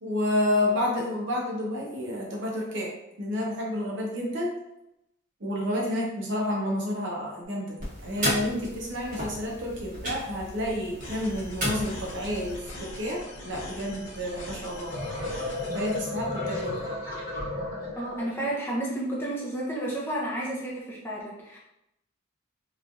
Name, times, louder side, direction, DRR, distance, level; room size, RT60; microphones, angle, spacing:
voice 1, 0.0-2.9 3.2-4.5 5.4-7.8 8.0-14.9 15.7-16.9, left 1 dB, 60° right, -1 dB, 0.7 m, -30 dB
sound 1, 7.8-12.6, equal, 40° right, 1.1 m, -34 dB
sound 2, 11.0-16.0, left 1 dB, 65° left, 0.7 m, -42 dB
sound 3, 14.6-18.5, left 2 dB, 45° left, 1.1 m, -34 dB
voice 2, 18.0-21.6, right 1 dB, 10° left, -5 dB, 0.5 m, -31 dB
3.1 x 2.4 x 2.5 m, 0.86 s
head